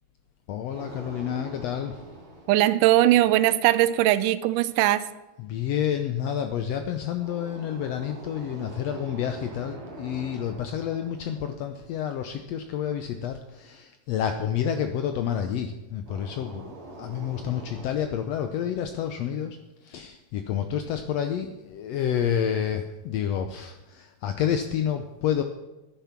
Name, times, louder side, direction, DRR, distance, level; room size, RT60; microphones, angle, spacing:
voice 1, 0.5-2.0 5.4-19.6 19.8-25.4, left 9 dB, 80° left, 7 dB, 1.5 m, -29 dB
sound 1, 0.7-3.8 7.2-12.6 16.1-17.9, right 3 dB, 45° right, 2.7 m, -44 dB
voice 2, 2.5-5.1, right 14 dB, 80° right, 14 dB, 2.2 m, -20 dB
13.5 x 10.5 x 5.9 m, 1.1 s
omnidirectional pair, 3.8 m